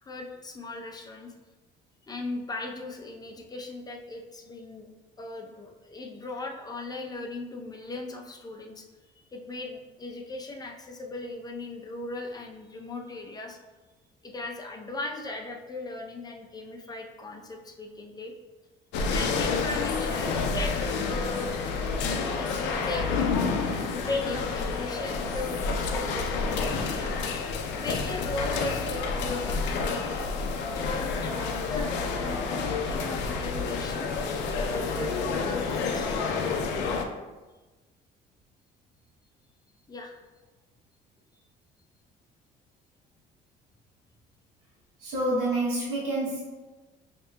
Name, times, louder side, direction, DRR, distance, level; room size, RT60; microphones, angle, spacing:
voice 1, 0.0-1.3 2.0-4.9 5.2-8.9 9.2-13.6 14.2-18.3 19.1-21.5 22.4-23.6 24.1-27.1 27.8-30.1 30.7-34.1 34.7-36.2 39.9-40.1, left 2 dB, 20° left, 1 dB, 0.5 m, -37 dB
sound 1, 18.9-37.0, left 4 dB, 80° left, 0.5 m, -29 dB
voice 2, 45.0-46.4, right 1 dB, 85° right, -6 dB, 1.0 m, -27 dB
5.5 x 2.8 x 2.2 m, 1.2 s
cardioid pair, 95°, 18 cm